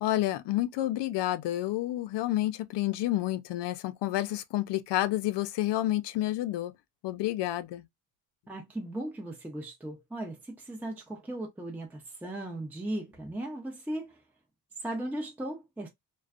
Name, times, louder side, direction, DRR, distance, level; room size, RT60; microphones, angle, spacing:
voice 1, 0.0-6.7 7.0-7.9, left 15 dB, 85° left, 0.5 m, -29 dB
voice 2, 8.5-14.2 14.8-15.9, right 1 dB, 5° right, 0.5 m, -37 dB
2.5 x 2.2 x 2.4 m
cardioid pair, 115°, 40 cm